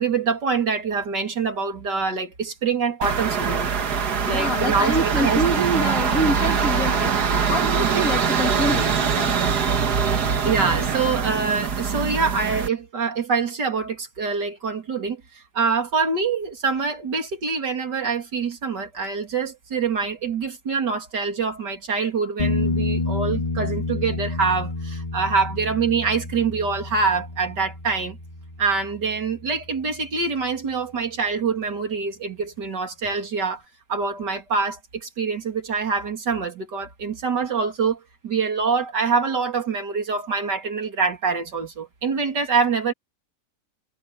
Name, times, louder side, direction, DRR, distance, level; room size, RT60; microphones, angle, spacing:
voice 1, 0.0-3.7 4.2-5.4 5.9-6.0 7.8-8.0 10.4-28.2 28.6-33.6 33.9-42.9, right 5 dB, 85° right, 3.4 m, -25 dB
sound 1, 3.0-12.7, right 6 dB, 70° right, 2.1 m, -23 dB
voice 2, 4.3-9.5, equal, 50° left, 3.1 m, -26 dB
sound 2, 22.4-30.0 33.0-33.1, left 3 dB, 20° left, 2.4 m, -29 dB
omnidirectional pair, 1.8 m